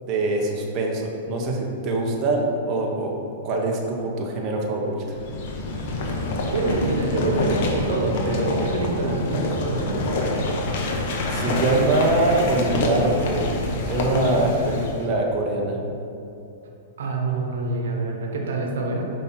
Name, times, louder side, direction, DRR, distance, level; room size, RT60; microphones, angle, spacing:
voice 1, 0.1-3.1 3.4-5.0 11.3-13.5 13.8-15.8, right 2 dB, 35° right, -1 dB, 0.9 m, -23 dB
sound 1, 5.1-15.0, left 1 dB, 60° left, 1.1 m, -26 dB
voice 2, 6.5-10.1 17.0-19.0, right 3 dB, 85° right, 1 dB, 1.1 m, -26 dB
5.5 x 5.5 x 4.3 m, 2.7 s
hypercardioid pair, 140°, 0 cm